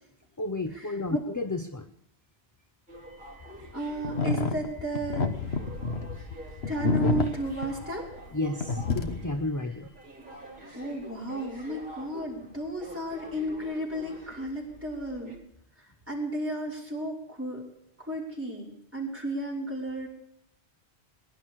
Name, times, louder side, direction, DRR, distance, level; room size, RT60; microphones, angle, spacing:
voice 1, 0.4-1.9 8.3-9.9, left 2 dB, 20° left, 8 dB, 0.7 m, -32 dB
sound 1, 2.9-15.4, right 1 dB, 50° right, 4.3 m, -47 dB
voice 2, 3.7-5.3 6.7-8.1 10.7-15.4 15.8-17.6 18.0-20.1, right 1 dB, 10° right, -4 dB, 5.7 m, -33 dB
sound 2, 4.0-8.4 8.6-9.4, left 4 dB, 75° left, 1.6 m, -29 dB
22.0 x 11.5 x 4.8 m, 0.71 s
omnidirectional pair, 1.1 m